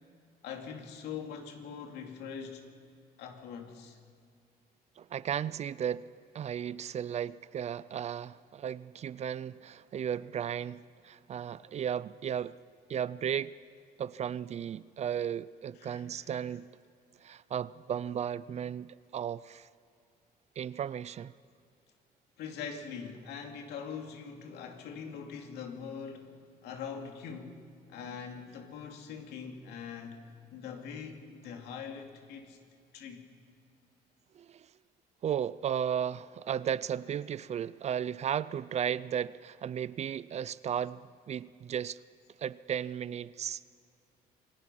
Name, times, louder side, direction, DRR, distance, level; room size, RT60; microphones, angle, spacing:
voice 1, 0.4-2.7 3.2-4.0 15.8-16.4 22.4-27.6 27.9-32.6 32.9-33.3, left 6 dB, 80° left, 2.5 m, -43 dB
voice 2, 5.0-6.1 6.3-12.6 12.9-13.5 14.0-16.7 17.2-19.7 20.6-21.3 34.3-34.7 35.2-42.0 42.4-43.6, right 9 dB, 40° right, 0.5 m, -35 dB
27.5 x 19.0 x 5.6 m
cardioid pair, 110°, 17 cm